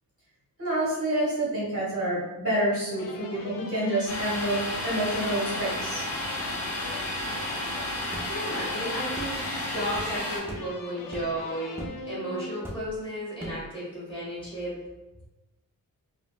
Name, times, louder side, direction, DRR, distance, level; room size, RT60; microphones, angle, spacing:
voice 1, 0.6-6.1, right 1 dB, 40° right, -6 dB, 1.0 m, -28 dB
sound 1, 2.9-12.9, left 3 dB, 70° left, 0.5 m, -43 dB
Domestic sounds home sounds, 4.1-10.4, left 1 dB, 45° left, 0.8 m, -32 dB
sound 2, 8.1-8.3 9.2-9.4 9.9-10.1 10.5-10.7 11.1-11.4 11.8-12.0 12.6-13.0 13.4-13.7, equal, 5° right, 0.4 m, -38 dB
voice 2, 8.2-11.8 12.0-14.7, right 1 dB, 15° left, -9 dB, 1.5 m, -34 dB
3.9 x 2.1 x 2.3 m, 1.0 s
wide cardioid pair, 155°, 34 cm